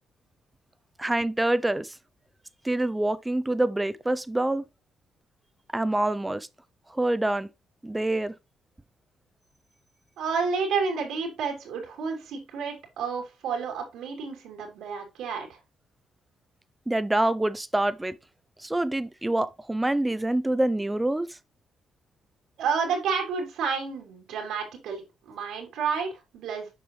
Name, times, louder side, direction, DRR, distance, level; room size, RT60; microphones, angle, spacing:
voice 1, 1.0-1.9 2.6-4.7 5.7-6.5 6.9-7.5 7.8-8.3 16.9-18.2 18.6-21.3, right 1 dB, 10° right, 0.6 m, -26 dB
voice 2, 10.2-15.6 22.6-26.7, right 5 dB, 85° right, 3.1 m, -30 dB
7.6 x 5.4 x 3.1 m
cardioid pair, 90°, 0 cm